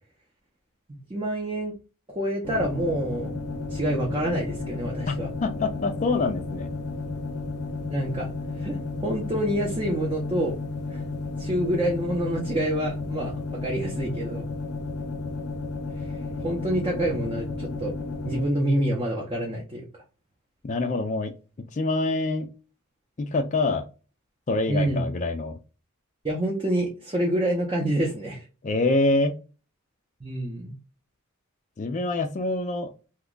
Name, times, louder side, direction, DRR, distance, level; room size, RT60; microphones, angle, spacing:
voice 1, 1.1-1.7 2.1-3.3 3.7-5.3 7.9-8.3 8.6-10.6 10.9-11.0 11.4-13.3 13.6-14.5 16.4-17.9 18.2-19.8 24.7-25.1 26.2-28.4 30.2-30.7, right 1 dB, 25° right, -2 dB, 0.6 m, -27 dB
sound 1, 2.4-18.5, left 3 dB, 90° left, 0.6 m, -33 dB
voice 2, 5.4-6.7 20.6-21.3 21.7-22.5 23.2-23.8 24.5-25.5 28.6-29.4 31.8-33.1, left 2 dB, 35° left, 7 dB, 0.4 m, -25 dB
2.9 x 2.2 x 3.7 m, 0.33 s
head